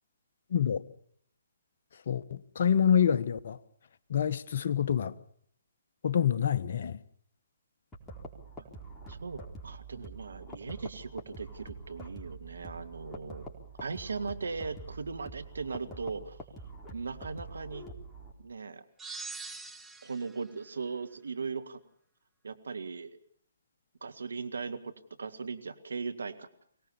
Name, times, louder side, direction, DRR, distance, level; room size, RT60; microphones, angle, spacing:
voice 1, 0.5-0.8 2.1-3.6 4.1-5.1 6.0-7.0, left 8 dB, 55° left, 1.2 m, -26 dB
sound 1, 7.9-18.3, right 2 dB, 10° left, 4.2 m, -46 dB
voice 2, 9.1-13.4 13.8-16.4 16.9-17.9 18.4-18.8 20.0-21.8 22.4-23.1 24.0-24.9 25.2-26.5, right 4 dB, 75° right, 1.7 m, -38 dB
sound 2, 19.0-20.4, right 4 dB, 5° right, 0.9 m, -42 dB
23.5 x 18.5 x 7.1 m
figure-of-eight pair, 135°, 0 cm